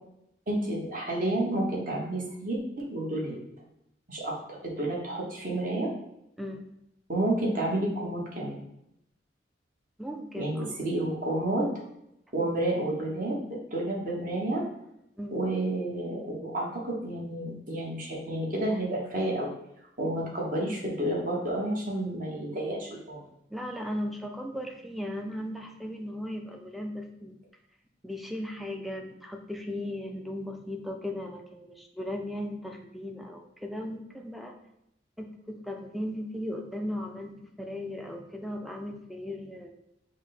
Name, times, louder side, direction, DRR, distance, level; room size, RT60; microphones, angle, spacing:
voice 1, 0.5-3.4 4.1-5.9 7.1-8.6 10.4-11.7 12.3-14.6 15.3-19.5 20.0-23.2, right 1 dB, 45° right, -2 dB, 1.1 m, -30 dB
voice 2, 10.0-10.7 15.2-15.4 23.5-27.4 28.0-34.5 35.2-39.7, left 1 dB, ahead, 2 dB, 0.4 m, -37 dB
6.1 x 2.1 x 4.0 m, 0.80 s
head